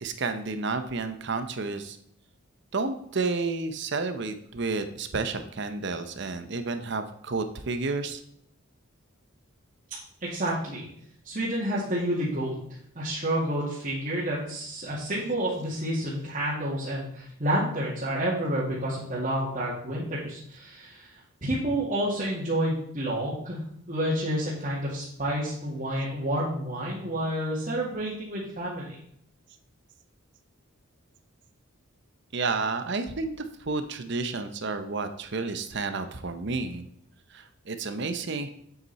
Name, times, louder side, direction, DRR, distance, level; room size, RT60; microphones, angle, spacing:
voice 1, 0.0-2.0 2.7-8.2 32.3-33.3 33.6-36.8 37.3-38.5, right 3 dB, 55° right, 8 dB, 0.8 m, -31 dB
voice 2, 10.2-10.9 11.2-12.6 13.0-21.1 21.4-23.6 23.9-28.9, right 1 dB, 40° right, -8 dB, 2.2 m, -29 dB
8.2 x 7.9 x 4.1 m, 0.69 s
head